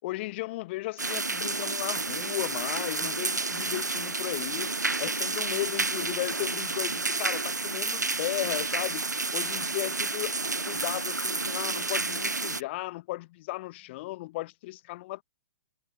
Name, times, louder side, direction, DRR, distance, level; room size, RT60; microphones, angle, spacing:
voice 1, 0.0-10.4 10.6-15.2, left 19 dB, 40° left, 1.9 m, -35 dB
sound 1, 1.0-12.6, right 3 dB, 85° right, 1.1 m, -30 dB
figure-of-eight pair, 120°, 9 cm